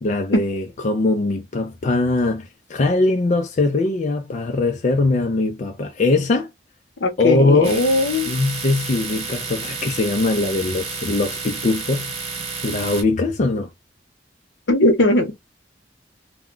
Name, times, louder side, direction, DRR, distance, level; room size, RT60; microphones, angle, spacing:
voice 1, 0.0-6.5 7.2-7.7 8.3-12.1 12.6-13.7, left 2 dB, 40° left, 0.4 m, -21 dB
voice 2, 7.0-8.3 14.7-15.3, left 2 dB, 80° left, 0.9 m, -18 dB
Domestic sounds home sounds, 7.6-13.0, right 4 dB, 35° right, 0.7 m, -30 dB
2.2 x 2.1 x 3.7 m
head